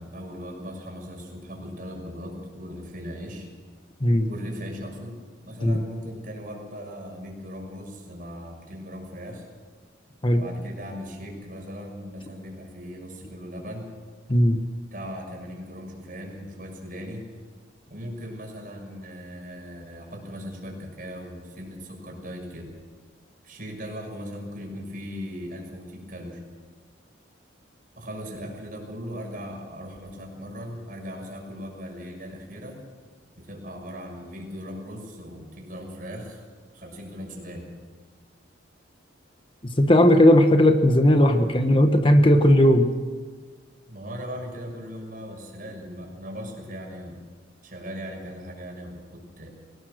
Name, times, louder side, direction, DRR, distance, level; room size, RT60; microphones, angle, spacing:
voice 1, 0.0-3.5 4.3-9.5 10.3-13.9 14.8-17.3 17.9-22.8 23.4-26.4 28.0-32.8 33.3-36.5 36.7-37.7 43.9-47.2 47.6-49.5, equal, 50° right, 1 dB, 6.3 m, -38 dB
voice 2, 14.3-14.6 39.6-42.9, left 1 dB, 30° left, 6 dB, 1.2 m, -17 dB
23.5 x 19.0 x 6.5 m, 1.5 s
head